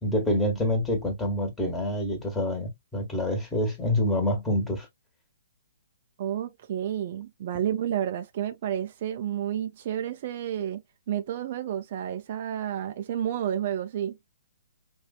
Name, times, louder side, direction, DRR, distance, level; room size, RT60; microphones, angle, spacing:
voice 1, 0.0-4.9, left 1 dB, 10° left, 1.6 m, -27 dB
voice 2, 6.2-10.8 11.1-14.2, right 10 dB, 45° right, 0.6 m, -30 dB
5.7 x 2.6 x 2.3 m
figure-of-eight pair, 130°, 0 cm